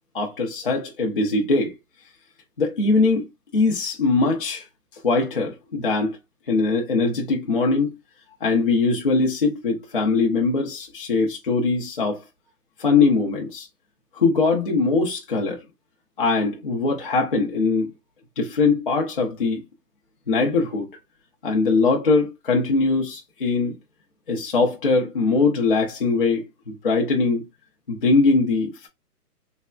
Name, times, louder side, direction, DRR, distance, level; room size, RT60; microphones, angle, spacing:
voice 1, 0.1-1.7 2.6-3.3 3.5-4.7 5.0-6.2 6.5-7.9 8.4-12.2 12.8-13.7 14.1-15.6 16.2-17.9 18.4-19.6 20.3-20.9 21.4-23.7 24.3-27.4 27.9-28.9, left 3 dB, 35° left, 0.4 m, -21 dB
3.2 x 2.0 x 2.3 m
hypercardioid pair, 150°, 48 cm